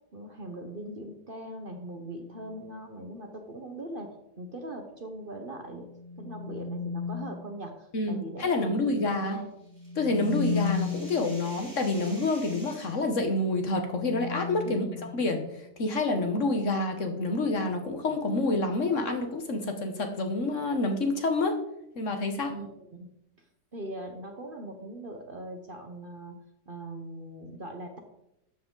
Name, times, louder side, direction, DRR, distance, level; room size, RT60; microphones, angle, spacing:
voice 1, 0.1-5.9 6.2-9.5 14.6-15.1 22.5-23.1 23.7-26.4 26.7-28.0, right 1 dB, 40° right, 4 dB, 1.1 m, -40 dB
sound 1, 2.0-2.5 5.6-7.5 9.6-11.3 13.3-15.6, left 5 dB, 80° right, 1.5 m, -35 dB
voice 2, 7.9-9.4 10.0-14.8 15.1-15.4 15.8-21.6 21.9-22.5, left 2 dB, 55° left, 5 dB, 1.3 m, -28 dB
sound 2, 9.3-13.1, equal, 5° left, 4.7 m, -50 dB
12.5 x 7.7 x 3.9 m, 0.82 s
omnidirectional pair, 1.7 m